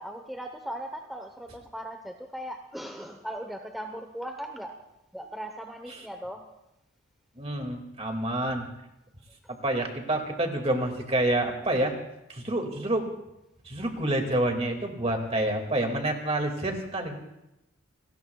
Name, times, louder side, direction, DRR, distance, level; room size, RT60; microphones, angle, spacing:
voice 1, 0.0-4.8 5.1-6.4 9.4-9.5, equal, ahead, 3 dB, 0.9 m, -38 dB
voice 2, 7.4-8.7 9.6-11.9 12.3-13.1 13.7-17.2, right 1 dB, 30° right, 4 dB, 2.1 m, -28 dB
28.0 x 19.5 x 2.3 m, 0.90 s
head